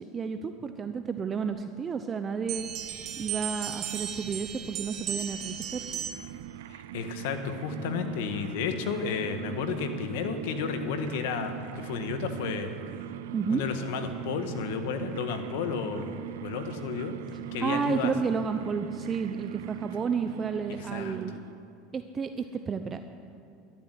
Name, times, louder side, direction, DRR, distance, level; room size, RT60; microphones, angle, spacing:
voice 1, 0.0-2.7 3.2-5.9 13.3-13.6 17.6-21.3 21.9-23.1, right 5 dB, 30° right, 8 dB, 0.7 m, -31 dB
sound 1, 2.5-6.4, right 9 dB, 50° right, 1.3 m, -36 dB
sound 2, 5.1-21.8, right 13 dB, 85° right, 0.5 m, -40 dB
voice 2, 6.7-12.7 13.5-16.1 16.4-17.1 17.5-18.1 20.9-21.2, left 6 dB, 75° left, 7 dB, 1.7 m, -32 dB
12.0 x 12.0 x 9.3 m, 2.6 s
supercardioid pair, 110°, 0 cm